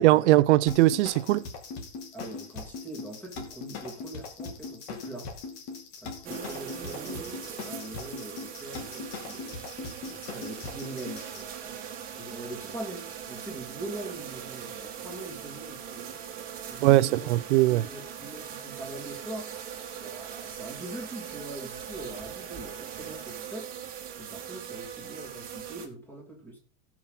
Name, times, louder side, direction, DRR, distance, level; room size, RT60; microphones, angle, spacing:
voice 1, 0.0-1.4 16.8-17.9, right 17 dB, 75° right, 0.7 m, -20 dB
sound 1, 0.7-11.4, left 4 dB, 45° left, 2.7 m, -40 dB
voice 2, 2.1-5.3 6.0-9.6 10.1-11.8 12.2-16.2 16.7-17.3 17.7-19.6 20.0-23.7 24.2-26.6, right 2 dB, 5° left, 2.8 m, -42 dB
sound 2, 6.2-25.9, right 8 dB, 25° right, 1.8 m, -40 dB
18.0 x 6.1 x 4.0 m
supercardioid pair, 175°, 35 cm